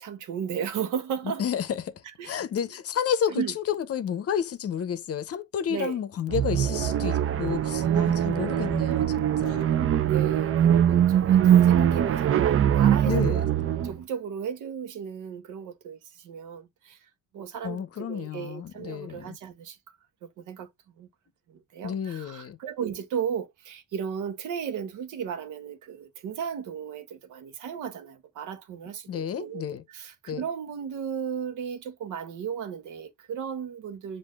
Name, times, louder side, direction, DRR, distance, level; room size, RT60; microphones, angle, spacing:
voice 1, 0.0-1.4 2.2-2.4 3.3-3.5 5.7-6.0 7.8-8.7 9.4-9.7 10.0-17.0 17.3-19.8 20.2-20.7 21.0-21.1 21.5-29.6 29.9-34.2, right 8 dB, 80° right, 0.9 m, -35 dB
voice 2, 1.2-1.9 2.2-9.7 13.0-13.4 17.6-19.4 21.8-22.6 29.1-29.8 30.3-30.4, left 8 dB, 50° left, 0.7 m, -31 dB
sound 1, 6.3-14.0, right 10 dB, 45° right, 0.5 m, -22 dB
7.4 x 2.6 x 2.3 m
cardioid pair, 90°, 30 cm